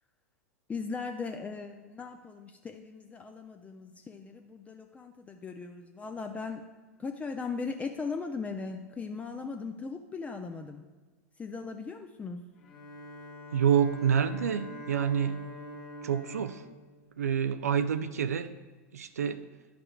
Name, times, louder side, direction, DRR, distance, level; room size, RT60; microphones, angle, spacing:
voice 1, 0.7-6.6 7.0-10.8 11.4-12.4, left 4 dB, 15° left, 5 dB, 0.4 m, -38 dB
Bowed string instrument, 12.6-17.8, equal, 60° left, 1.8 m, -45 dB
voice 2, 13.5-15.4 16.0-16.6 17.2-18.5 18.9-19.5, right 8 dB, 85° right, 11 dB, 0.3 m, -27 dB
9.9 x 5.9 x 2.2 m, 1.3 s
hypercardioid pair, 95°, 8 cm